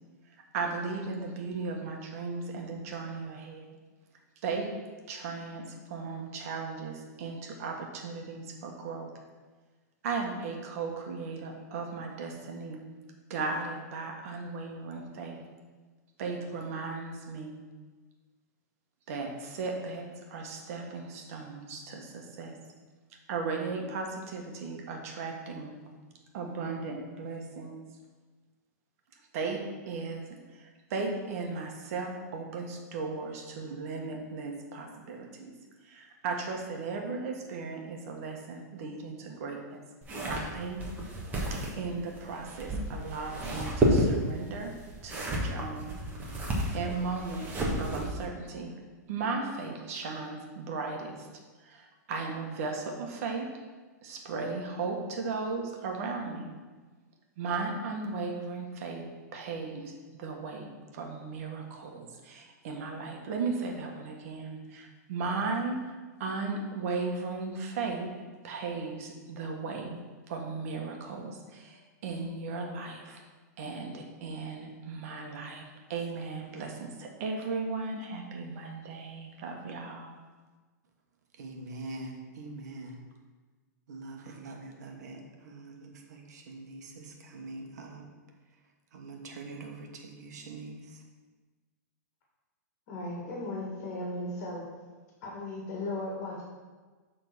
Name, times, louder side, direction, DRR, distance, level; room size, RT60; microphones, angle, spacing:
voice 1, 0.5-3.7 4.4-4.7 5.1-9.1 10.0-12.8 13.3-15.4 16.2-17.6 19.1-22.6 23.3-25.7 26.3-27.8 29.3-35.5 35.8-39.8 40.2-40.8 41.5-44.7 45.0-45.9 46.4-46.5 46.7-48.7 49.1-51.3 51.6-53.6 54.0-56.5 57.4-59.1 59.3-65.9 66.2-70.0 70.3-73.2 73.6-75.6 75.9-80.1, right 4 dB, 55° right, 2 dB, 1.4 m, -36 dB
sound 1, 40.0-48.3, right 1 dB, 15° right, 1.3 m, -31 dB
voice 2, 81.4-83.0 83.9-88.0 88.9-91.0, right 2 dB, 75° right, 2 dB, 1.3 m, -44 dB
voice 3, 92.9-94.6 95.2-96.4, left 1 dB, 45° left, -3 dB, 2.1 m, -36 dB
6.9 x 3.9 x 6.2 m, 1.3 s
hypercardioid pair, 140°, 9 cm